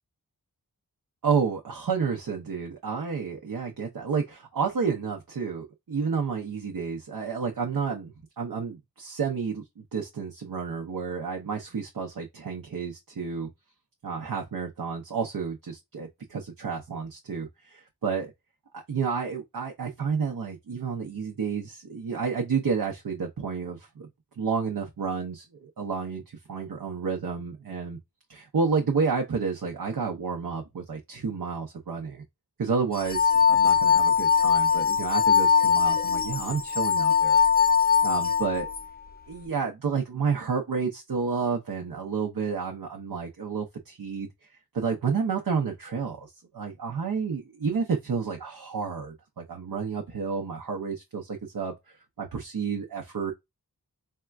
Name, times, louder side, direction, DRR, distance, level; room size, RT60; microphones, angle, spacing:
voice 1, 1.2-13.5 14.0-18.3 18.7-24.1 24.4-28.0 28.3-32.2 32.6-37.4 38.0-38.7 39.3-44.5 44.7-53.3, right 5 dB, 70° right, 0.7 m, -30 dB
sound 1, 33.0-38.8, left 7 dB, 25° left, 0.4 m, -21 dB
3.6 x 2.2 x 2.3 m
wide cardioid pair, 40°, 37 cm